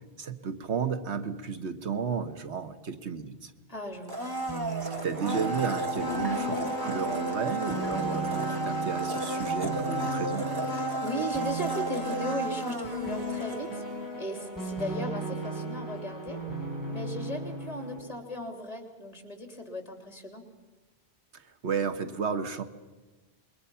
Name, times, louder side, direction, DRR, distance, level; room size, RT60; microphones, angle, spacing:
voice 1, 0.2-3.5 5.0-10.5 21.3-22.6, right 6 dB, 80° right, 8 dB, 1.5 m, -33 dB
voice 2, 3.7-4.2 10.7-13.8 14.2-16.4 16.9-20.4, equal, 35° left, 5 dB, 3.2 m, -36 dB
Domestic sounds home sounds, 4.1-14.0 14.3-14.4, right 2 dB, 20° right, 2.0 m, -33 dB
sound 1, 4.5-18.0, right 2 dB, 15° left, 5.5 m, -37 dB
sound 2, 5.2-10.1, left 8 dB, 65° left, 1.6 m, -46 dB
27.0 x 22.5 x 5.7 m, 1.2 s
omnidirectional pair, 1.1 m